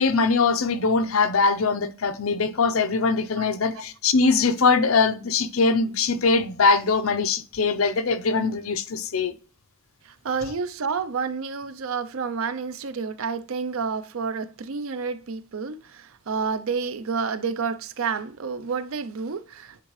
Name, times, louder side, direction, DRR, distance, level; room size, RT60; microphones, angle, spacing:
voice 1, 0.0-9.3, left 4 dB, 85° left, 0.7 m, -22 dB
voice 2, 10.0-19.8, right 5 dB, 80° right, 0.6 m, -29 dB
8.3 x 3.7 x 3.2 m
head